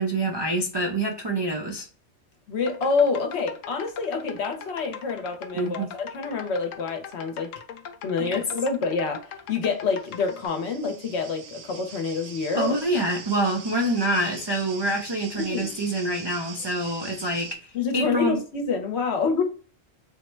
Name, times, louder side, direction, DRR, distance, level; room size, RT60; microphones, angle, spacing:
voice 1, 0.0-1.9 5.5-5.9 8.3-8.4 12.6-18.4, right 1 dB, 45° right, 0.3 m, -26 dB
voice 2, 2.5-7.5 8.0-12.8 15.3-15.7 17.7-19.4, left 4 dB, 65° left, 1.0 m, -27 dB
sound 1, 2.6-10.5, left 7 dB, 85° left, 1.0 m, -41 dB
sound 2, 9.9-17.5, right 6 dB, 80° right, 1.1 m, -42 dB
3.5 x 2.1 x 4.4 m
omnidirectional pair, 1.3 m